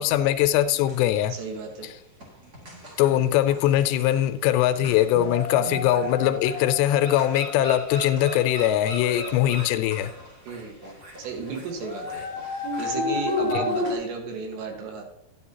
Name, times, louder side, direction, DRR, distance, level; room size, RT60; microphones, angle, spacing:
voice 1, 0.0-1.3 3.0-10.1 13.5-13.6, left 12 dB, 85° left, 11 dB, 2.8 m, -22 dB
sound 1, 0.8-1.8 2.2-13.9, left 2 dB, 40° right, 1.5 m, -33 dB
voice 2, 1.3-1.9 5.6-5.7 10.5-15.0, right 4 dB, 85° right, 3 dB, 3.8 m, -34 dB
11.5 x 10.5 x 2.9 m, 0.75 s
omnidirectional pair, 4.9 m